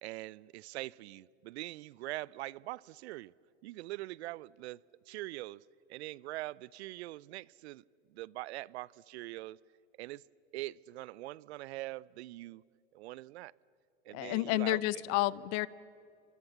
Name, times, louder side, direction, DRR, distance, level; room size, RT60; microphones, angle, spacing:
voice 1, 0.0-3.3 3.6-4.8 5.1-5.6 5.9-7.8 8.1-9.6 10.0-10.2 10.5-12.6 12.9-13.5 14.1-15.0, right 18 dB, 60° right, 0.6 m, -43 dB
voice 2, 14.1-15.7, left 18 dB, 45° left, 0.8 m, -30 dB
29.5 x 26.0 x 7.2 m
hypercardioid pair, 95°, 37 cm